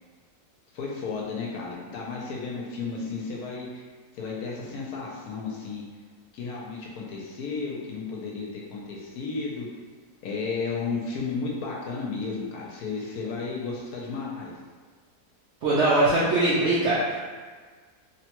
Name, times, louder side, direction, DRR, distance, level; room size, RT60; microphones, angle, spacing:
voice 1, 0.7-3.8 4.1-5.8 6.3-9.7 10.2-14.5, left 4 dB, 75° left, -3 dB, 1.1 m, -33 dB
voice 2, 15.6-17.2, right 2 dB, 65° right, -8 dB, 0.7 m, -21 dB
3.0 x 2.2 x 2.9 m, 1.5 s
omnidirectional pair, 1.7 m